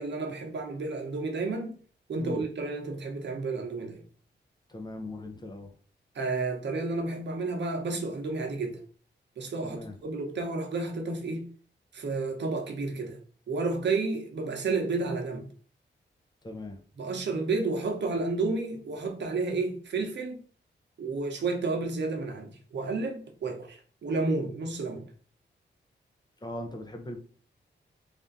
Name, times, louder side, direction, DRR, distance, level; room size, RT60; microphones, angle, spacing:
voice 1, 0.0-1.8 2.1-4.0 6.1-8.8 9.4-11.5 11.9-13.2 13.5-15.5 17.0-20.4 21.0-25.1, right 3 dB, 70° right, 0.9 m, -31 dB
voice 2, 4.7-5.7 9.6-9.9 16.4-16.8 26.4-27.2, left 1 dB, 20° left, 0.6 m, -39 dB
3.5 x 2.6 x 3.9 m
wide cardioid pair, 140°, 19 cm